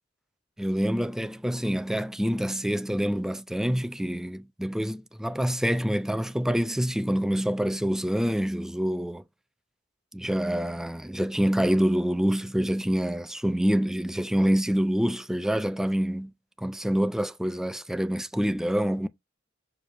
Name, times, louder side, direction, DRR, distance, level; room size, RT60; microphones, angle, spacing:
voice 1, 0.6-9.2 10.1-16.3 16.6-19.1, equal, 5° right, 0.4 m, -26 dB
6.5 x 4.4 x 3.4 m
head